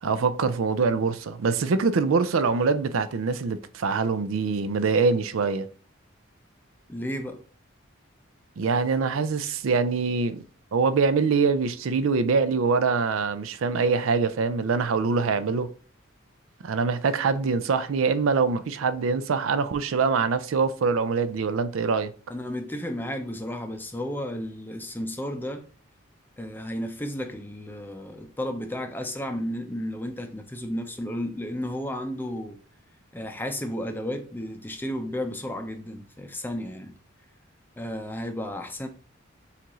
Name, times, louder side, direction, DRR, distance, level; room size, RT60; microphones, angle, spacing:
voice 1, 0.0-5.7 8.6-10.4 10.7-15.7 16.6-22.1, right 4 dB, 80° right, 0.4 m, -24 dB
voice 2, 6.9-7.4 22.3-25.6 26.4-32.6 33.1-36.9 37.8-38.9, left 1 dB, 10° left, 0.5 m, -33 dB
7.0 x 2.5 x 3.0 m
head